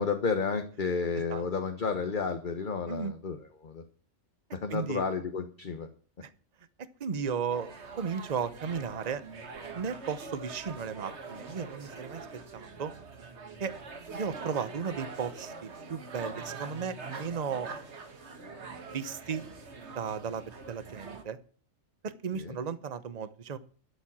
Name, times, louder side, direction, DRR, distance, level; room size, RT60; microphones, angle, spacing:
voice 1, 0.0-3.8 4.5-5.9 22.3-22.6, left 5 dB, 45° left, 7 dB, 1.2 m, -31 dB
voice 2, 4.7-5.0 6.2-6.3 6.8-9.2 9.7-12.9 13.6-13.7 14.1-17.7 18.9-19.4 19.9-21.4 22.0-23.6, right 6 dB, 35° right, 15 dB, 0.9 m, -35 dB
sound 1, 7.5-21.2, right 4 dB, 60° right, 1.8 m, -44 dB
12.5 x 7.4 x 7.4 m, 0.42 s
omnidirectional pair, 1.3 m